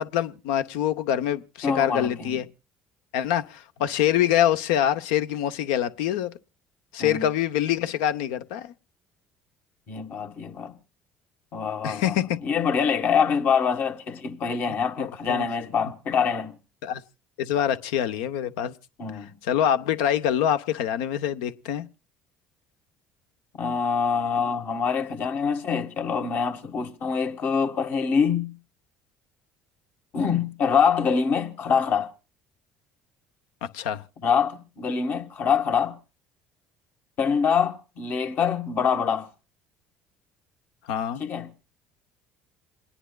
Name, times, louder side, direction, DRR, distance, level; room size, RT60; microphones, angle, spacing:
voice 1, 0.0-2.5 3.1-6.3 6.9-8.7 11.8-12.2 15.0-15.5 16.8-17.0 17.4-18.7 19.4-21.9 33.7-34.0 40.9-41.2, left 10 dB, 80° left, 0.7 m, -25 dB
voice 2, 1.6-2.4 7.0-7.3 9.9-10.7 11.5-16.5 19.0-19.3 23.6-28.6 30.1-32.1 34.2-36.0 37.2-39.3 41.2-41.5, left 6 dB, 55° left, 1.5 m, -25 dB
28.0 x 10.0 x 2.3 m
supercardioid pair, 75°, 4 cm